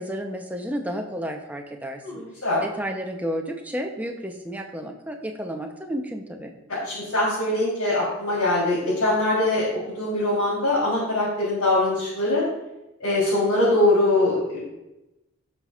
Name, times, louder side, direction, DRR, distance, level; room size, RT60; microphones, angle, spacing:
voice 1, 0.0-2.2 2.6-6.5, equal, 5° right, 3 dB, 0.8 m, -32 dB
voice 2, 2.0-2.6 6.7-9.7 9.9-12.4 13.0-14.7, left 2 dB, 75° left, -9 dB, 3.5 m, -22 dB
15.5 x 6.0 x 2.5 m, 0.94 s
head